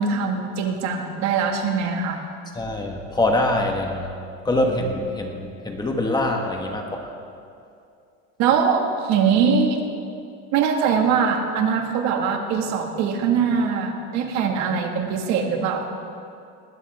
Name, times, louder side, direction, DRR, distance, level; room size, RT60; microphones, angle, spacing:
voice 1, 0.0-2.2 8.4-9.8 10.5-15.9, right 6 dB, 65° right, 3 dB, 2.0 m, -22 dB
voice 2, 2.5-4.1 4.4-7.1, left 1 dB, 15° left, 2 dB, 1.4 m, -24 dB
19.5 x 18.5 x 3.6 m, 2.5 s
cardioid pair, 145°, 30 cm